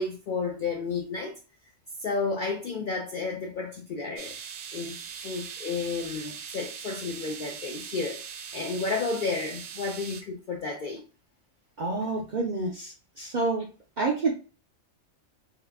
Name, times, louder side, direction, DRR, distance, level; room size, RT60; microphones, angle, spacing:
voice 1, 0.0-1.4 2.0-4.4 4.7-5.0 5.2-11.0, left 4 dB, 65° left, 0.4 m, -32 dB
sound 1, 4.2-10.2, right 7 dB, 80° right, 0.9 m, -41 dB
voice 2, 11.8-13.6 14.0-14.3, right 3 dB, 60° right, 0.5 m, -28 dB
2.8 x 2.4 x 3.4 m
omnidirectional pair, 1.4 m